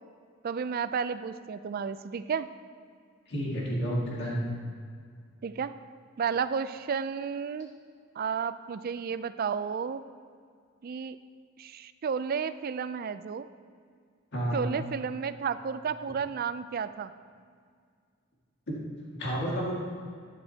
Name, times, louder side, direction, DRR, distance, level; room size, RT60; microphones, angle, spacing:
voice 1, 0.4-2.5 5.4-5.7 6.2-7.7 8.2-10.0 10.8-11.2 11.6-13.5 14.5-17.1, right 6 dB, 45° right, 13 dB, 0.4 m, -32 dB
voice 2, 3.3-4.4 14.3-14.6 18.7-18.8 19.2-19.7, equal, 55° left, -4 dB, 2.0 m, -30 dB
12.0 x 10.0 x 2.8 m, 2.1 s
head